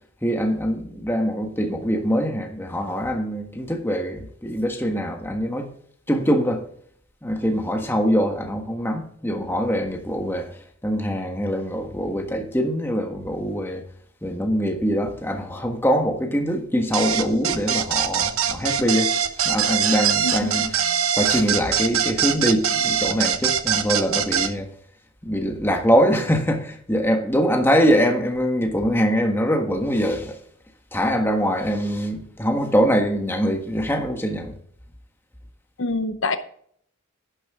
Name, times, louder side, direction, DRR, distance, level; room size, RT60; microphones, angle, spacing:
voice 1, 0.2-5.7 6.1-6.7 7.2-10.6 10.8-13.8 14.2-24.7 25.2-30.4 30.9-34.6, equal, 10° left, 1.5 m, -23 dB
sound 1, 16.9-24.5, right 8 dB, 80° right, 0.9 m, -22 dB
voice 2, 35.8-36.4, left 3 dB, 60° left, 0.8 m, -25 dB
11.5 x 10.5 x 3.7 m
head